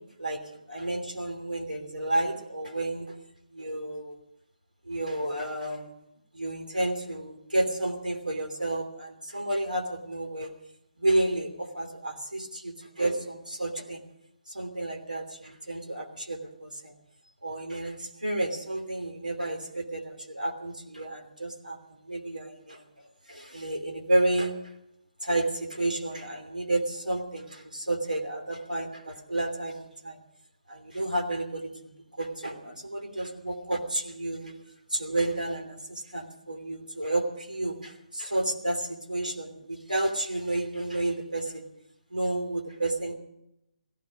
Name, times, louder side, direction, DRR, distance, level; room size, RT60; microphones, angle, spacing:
voice 1, 0.2-3.2 3.5-4.2 4.8-5.9 6.3-10.5 11.0-14.0 14.5-16.9 17.4-22.8 23.3-24.6 25.2-30.2 30.7-34.5 34.9-41.7 42.1-43.2, right 1 dB, 90° right, 4 dB, 3.1 m, -31 dB
16.5 x 16.0 x 5.1 m, 0.83 s
figure-of-eight pair, 145°, 4 cm